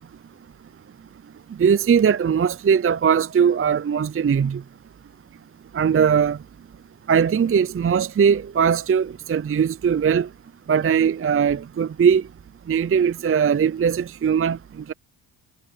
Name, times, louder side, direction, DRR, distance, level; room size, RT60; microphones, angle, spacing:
voice 1, 1.6-4.6 5.7-6.4 7.1-10.3 10.7-12.2 12.7-14.6, right 7 dB, 30° right, 0.6 m, -20 dB
supercardioid pair, 50°, 45 cm